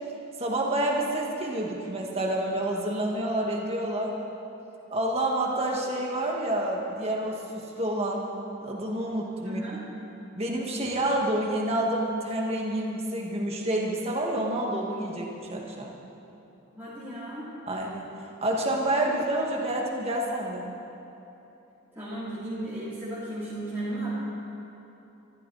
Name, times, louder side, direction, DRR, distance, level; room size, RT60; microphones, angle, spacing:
voice 1, 0.4-4.1 4.9-8.3 8.6-9.6 10.4-15.9 17.7-18.1 18.4-20.7, right 1 dB, 30° right, -1 dB, 2.1 m, -28 dB
voice 2, 9.4-9.8 16.7-17.5 22.0-24.1, right 1 dB, 10° right, -12 dB, 3.6 m, -35 dB
24.0 x 14.0 x 4.3 m, 3.0 s
head